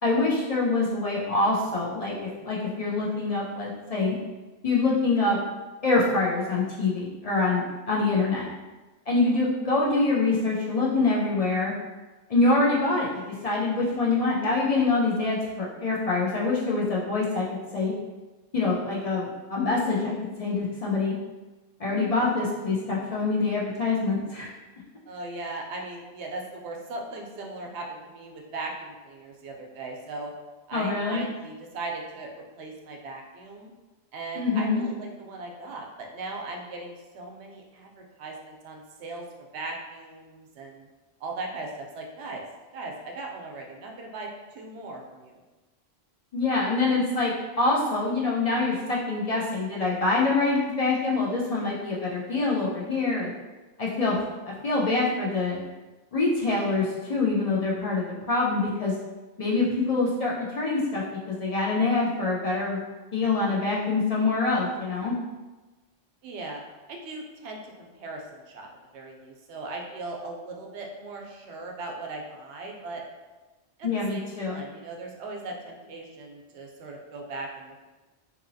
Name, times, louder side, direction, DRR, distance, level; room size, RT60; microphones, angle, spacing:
voice 1, 0.0-4.2 4.6-5.4 5.8-8.5 9.1-11.7 12.3-17.5 17.7-17.9 18.5-21.2 21.8-24.5 30.7-31.2 34.3-34.9 46.3-53.3 53.8-54.2 54.5-55.6 56.1-58.9 59.4-62.8 63.1-65.2 73.8-74.6, left 3 dB, 50° left, -5 dB, 0.4 m, -25 dB
voice 2, 25.1-30.3 30.7-33.7 34.1-40.9 41.2-42.4 42.7-45.4 66.2-66.6 66.9-68.7 68.9-73.0 73.8-77.8, right 2 dB, 90° right, 1 dB, 0.8 m, -38 dB
2.7 x 2.7 x 2.6 m, 1.2 s
omnidirectional pair, 1.1 m